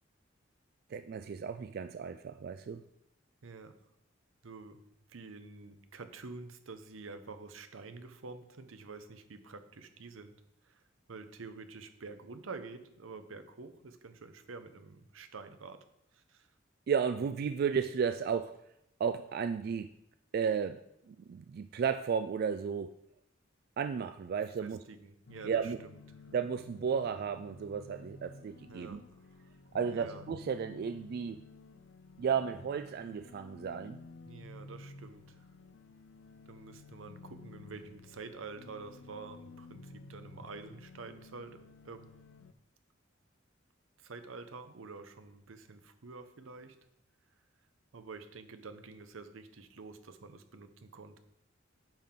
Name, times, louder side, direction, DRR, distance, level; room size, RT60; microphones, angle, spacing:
voice 1, 0.9-2.8 16.9-18.5 19.0-19.9 20.3-20.8 21.1-22.9 23.8-24.8 25.4-25.8 26.3-29.0 29.7-31.4 32.2-34.0, right 6 dB, 50° right, 9 dB, 0.3 m, -33 dB
voice 2, 3.4-3.7 4.4-4.8 5.1-10.4 10.6-10.8 11.1-15.9 16.1-16.5 24.6-25.9 28.7-29.0 29.9-30.2 34.3-35.4 36.5-42.1 44.0-46.8 47.9-51.2, right 4 dB, 85° right, 9 dB, 0.7 m, -48 dB
sound 1, 25.3-42.5, left 3 dB, 65° left, 0.5 m, -53 dB
8.9 x 5.8 x 3.7 m, 0.77 s
head